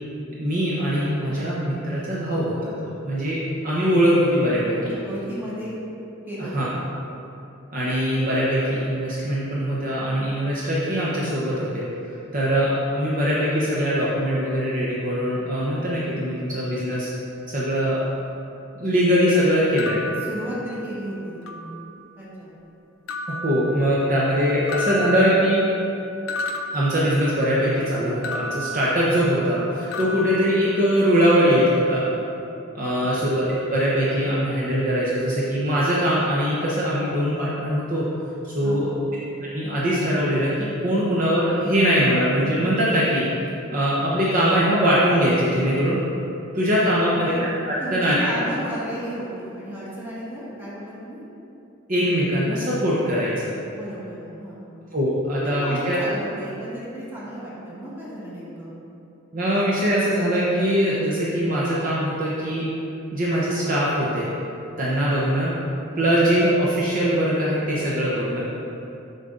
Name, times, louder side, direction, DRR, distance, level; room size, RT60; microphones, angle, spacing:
voice 1, 0.4-4.9 6.5-6.6 7.7-11.8 12.3-17.1 17.5-18.0 18.8-20.0 23.4-25.7 26.7-32.0 32.7-33.4 33.7-38.0 38.4-38.9 39.4-43.3 43.7-46.0 46.5-47.2 47.7-48.3 51.9-53.3 54.9-56.0 59.3-62.7 63.1-64.3 64.8-65.5 66.0-68.6, equal, 40° right, -7 dB, 0.8 m, -22 dB
voice 2, 4.7-5.8 6.3-6.9 20.2-21.6 22.2-22.5 38.6-39.0 46.8-47.4 47.8-51.2 53.7-54.7 55.4-58.7, equal, 10° right, -9 dB, 1.7 m, -34 dB
sound 1, 19.8-21.1 21.5-22.2 23.1-24.3 24.7-27.6 28.2-29.6 29.9-31.2, left 1 dB, 80° left, 0.5 m, -33 dB
7.4 x 5.5 x 3.8 m, 2.8 s
head